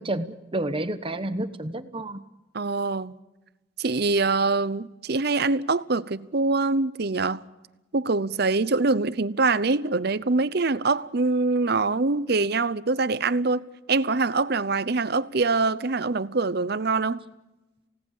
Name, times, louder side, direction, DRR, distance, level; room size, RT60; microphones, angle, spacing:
voice 1, 0.0-2.2, right 1 dB, 25° right, 1.1 m, -30 dB
voice 2, 2.5-3.1 3.8-7.4 7.9-17.2, right 3 dB, 55° right, 0.7 m, -24 dB
28.0 x 17.5 x 7.3 m
head